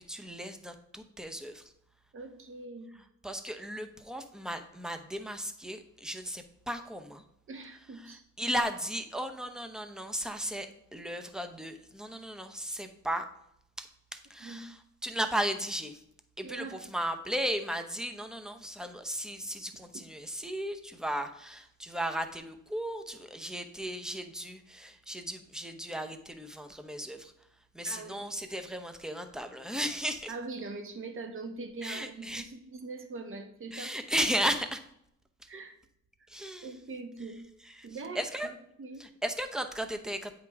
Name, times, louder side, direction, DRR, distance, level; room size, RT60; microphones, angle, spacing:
voice 1, 0.0-1.7 3.2-7.2 8.0-13.3 13.8-16.0 16.4-27.3 27.7-30.3 31.8-32.5 33.7-34.8 36.3-36.8 37.6-37.9 38.1-38.5 39.0-40.3, equal, ahead, 7 dB, 0.8 m, -35 dB
voice 2, 2.1-3.0 7.5-8.2 14.4-14.7 16.4-16.8 27.8-28.3 30.3-33.9 35.5-35.7 36.6-37.4 37.8-38.5 38.8-39.0, right 3 dB, 45° right, 6 dB, 1.2 m, -42 dB
8.3 x 5.1 x 3.5 m, 0.72 s
cardioid pair, 90°, 30 cm